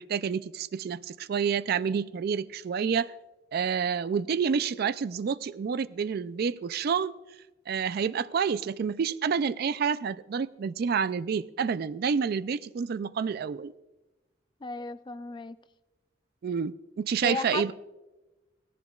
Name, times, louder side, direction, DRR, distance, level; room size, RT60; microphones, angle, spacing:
voice 1, 0.0-3.1 3.5-7.1 7.7-13.7 16.4-17.7, right 6 dB, 55° right, 15 dB, 0.3 m, -29 dB
voice 2, 14.6-15.6 17.2-17.7, left 3 dB, 25° left, 13 dB, 0.4 m, -35 dB
17.5 x 14.5 x 2.3 m, 1.1 s
head